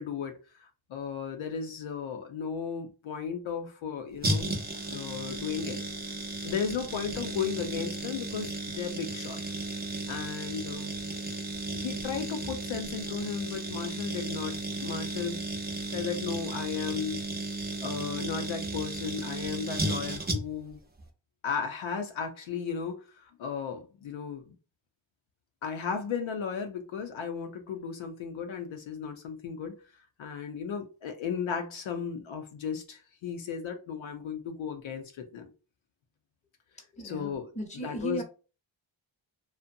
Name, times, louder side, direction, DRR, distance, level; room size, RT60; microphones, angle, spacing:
voice 1, 0.0-4.6 4.9-6.1 6.4-9.4 10.1-11.0 11.7-15.6 15.9-17.2 17.8-20.8 21.4-24.6 25.6-35.5 37.0-37.5 37.8-38.2, left 6 dB, 70° left, 0.6 m, -35 dB
sound 1, 4.2-20.7 21.0-21.1, right 2 dB, 20° right, 0.6 m, -34 dB
voice 2, 36.9-38.2, right 2 dB, 15° left, 0.9 m, -37 dB
2.5 x 2.1 x 2.6 m
cardioid pair, 70°, 49 cm